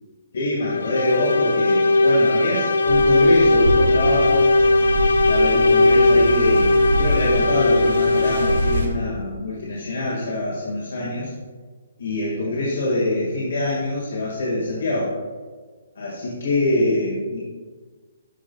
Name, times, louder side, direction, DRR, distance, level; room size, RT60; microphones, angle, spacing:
voice 1, 0.3-4.5 5.3-11.3 12.0-15.2 15.9-17.4, left 2 dB, 60° left, -5 dB, 1.7 m, -24 dB
sound 1, 0.6-9.0, left 2 dB, 85° left, 0.5 m, -18 dB
sound 2, 2.8-8.9, equal, 75° right, 1.6 m, -26 dB
12.0 x 5.4 x 2.3 m, 1.5 s
hypercardioid pair, 165°, 0 cm